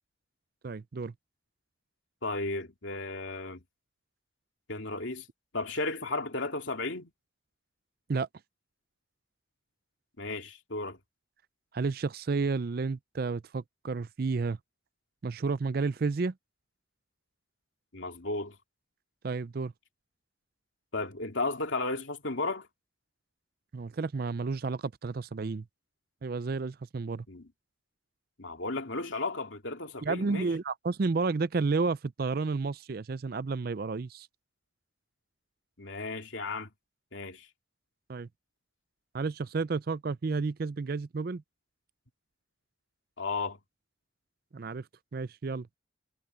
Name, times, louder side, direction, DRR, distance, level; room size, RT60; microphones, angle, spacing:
voice 1, 0.6-1.1 8.1-8.3 11.7-14.6 15.2-16.3 19.2-19.7 23.7-25.7 26.2-27.2 30.0-34.3 38.1-38.3 39.1-41.4 44.5-44.9 45.1-45.8, right 4 dB, 50° right, 0.4 m, -31 dB
voice 2, 2.2-3.6 4.7-5.3 5.5-7.1 10.2-11.0 17.9-18.6 20.9-22.7 27.3-27.5 28.4-30.5 35.8-36.7 37.1-37.5 43.2-43.6, left 3 dB, 70° left, 2.7 m, -34 dB
head